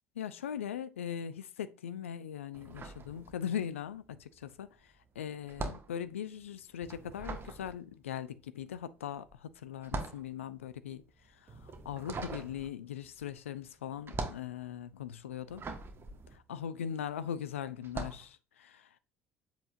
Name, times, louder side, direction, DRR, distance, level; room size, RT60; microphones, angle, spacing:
voice 1, 0.2-15.7 16.3-19.0, left 9 dB, 80° left, 0.6 m, -40 dB
sound 1, 2.5-3.8 4.0-17.2 17.8-18.3, right 3 dB, 35° right, 1.5 m, -42 dB
7.7 x 7.2 x 2.6 m
figure-of-eight pair, 60°, 7 cm